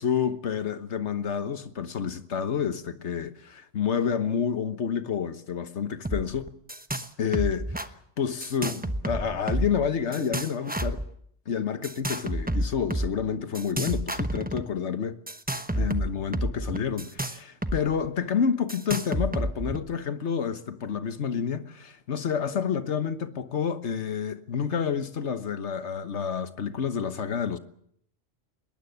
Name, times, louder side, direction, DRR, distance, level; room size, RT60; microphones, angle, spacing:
voice 1, 0.0-6.5 7.2-11.0 11.5-15.2 15.8-27.6, left 7 dB, 85° left, 1.5 m, -29 dB
sound 1, 6.0-6.2 6.5-7.1 7.3-7.9 8.4-9.8 10.1-11.0 11.8-13.1 13.5-14.6 15.3-17.8 18.0-18.1 18.7-19.8, right 1 dB, 10° right, 1.0 m, -29 dB
21.5 x 19.0 x 8.0 m
omnidirectional pair, 1.1 m